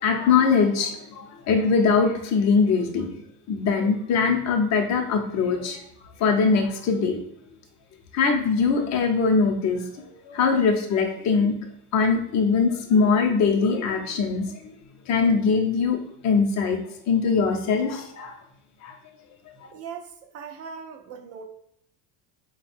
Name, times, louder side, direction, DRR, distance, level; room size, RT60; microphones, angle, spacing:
voice 1, 0.0-3.1 3.5-5.8 6.2-7.2 8.1-9.8 10.3-11.6 11.9-14.7 15.1-16.0 16.2-16.8 17.1-18.3 18.8-19.0, left 5 dB, 40° left, 3 dB, 0.7 m, -22 dB
voice 2, 19.7-21.4, right 6 dB, 35° right, 6 dB, 0.5 m, -39 dB
3.8 x 2.3 x 4.3 m, 0.74 s
cardioid pair, 135°, 43 cm